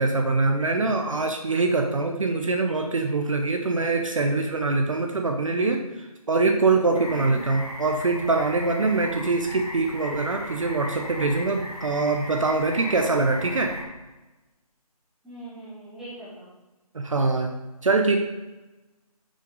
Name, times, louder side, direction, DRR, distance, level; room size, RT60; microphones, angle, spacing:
voice 1, 0.0-13.7 16.9-17.5 17.8-18.2, right 3 dB, 55° right, 3 dB, 0.9 m, -24 dB
sound 1, 6.9-13.8, equal, 80° left, 2.5 m, -37 dB
voice 2, 7.0-7.4 15.2-16.5, right 2 dB, ahead, -12 dB, 2.0 m, -41 dB
6.7 x 6.2 x 5.3 m, 1.1 s
figure-of-eight pair, 165°, 20 cm